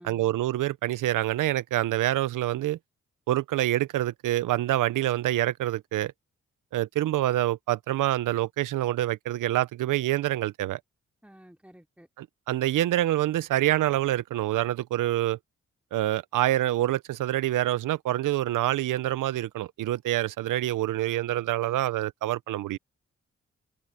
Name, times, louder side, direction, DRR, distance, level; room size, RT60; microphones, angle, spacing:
voice 1, 0.0-2.8 3.3-6.1 6.7-10.8 12.2-15.4 15.9-22.8, right 14 dB, 80° right, 0.9 m, -26 dB
voice 2, 11.2-12.1, equal, 5° right, 3.2 m, -51 dB
supercardioid pair, 40°, 31 cm